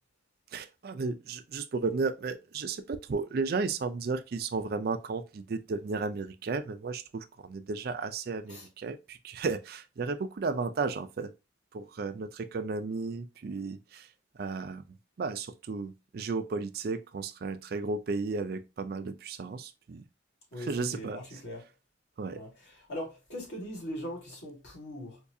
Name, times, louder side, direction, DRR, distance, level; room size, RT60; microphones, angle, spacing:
voice 1, 0.5-11.3 11.7-14.1 14.3-14.8 15.2-20.0 20.6-21.2 22.2-22.4, right 4 dB, 55° right, 0.4 m, -34 dB
voice 2, 20.5-21.6 22.3-25.2, equal, 85° left, 2.0 m, -40 dB
4.5 x 2.3 x 2.6 m
head